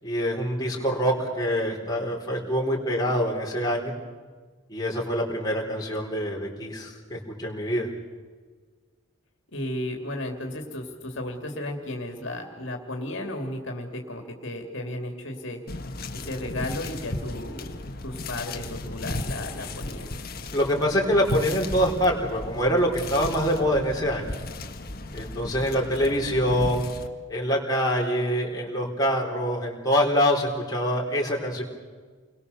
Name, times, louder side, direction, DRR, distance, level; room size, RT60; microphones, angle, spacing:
voice 1, 0.0-3.9 4.7-7.9 20.5-24.4 25.1-26.9 27.3-31.6, equal, 20° left, -2 dB, 4.3 m, -25 dB
voice 2, 9.5-15.6 16.1-17.7 18.0-20.1, left 1 dB, 60° left, 3 dB, 2.6 m, -34 dB
sound 1, 15.7-27.1, left 2 dB, 45° left, 1.6 m, -35 dB
29.5 x 22.0 x 7.0 m, 1.5 s
head